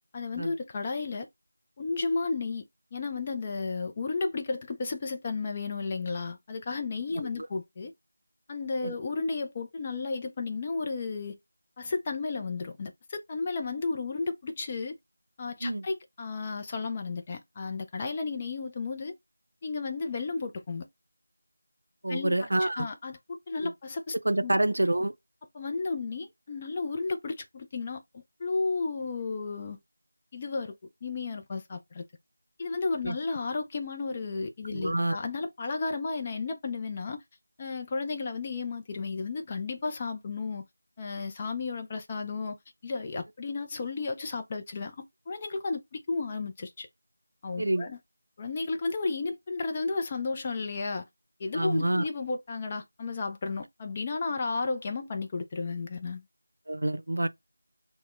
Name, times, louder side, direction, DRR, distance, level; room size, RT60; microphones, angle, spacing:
voice 1, 0.1-1.3 1.8-2.6 2.9-7.9 8.5-11.4 11.8-15.0 15.4-19.1 19.6-20.9 22.1-24.1 24.4-24.5 25.5-29.8 30.3-30.7 31.0-32.0 32.6-37.2 37.6-40.6 41.0-42.6 42.8-46.9 47.4-48.0 48.4-51.1 51.4-56.2, left 4 dB, 20° left, 0.3 m, -33 dB
voice 2, 22.0-22.9 23.6-23.7 24.3-25.1 33.0-33.2 34.7-35.2 47.6-47.9 51.5-52.0 56.7-57.3, right 1 dB, 70° right, 0.4 m, -27 dB
2.3 x 2.1 x 3.4 m
figure-of-eight pair, 170°, 0 cm